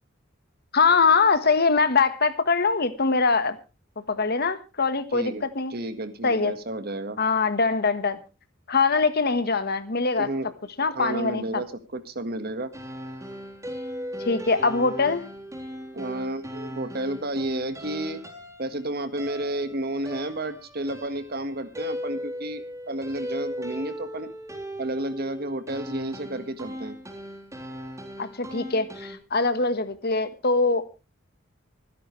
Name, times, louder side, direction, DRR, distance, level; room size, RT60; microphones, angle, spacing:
voice 1, 0.7-3.6 4.1-5.7 6.2-6.5 7.2-8.2 8.7-10.3 10.8-11.6 14.2-15.2 28.2-30.8, left 4 dB, 50° left, 1.4 m, -23 dB
voice 2, 5.1-5.4 5.7-7.2 10.2-10.5 10.9-12.7 15.9-18.2 18.6-24.3 24.8-26.9, right 1 dB, 50° right, 1.7 m, -31 dB
sound 1, 12.7-29.1, equal, 15° right, 3.7 m, -38 dB
25.5 x 10.0 x 3.3 m
head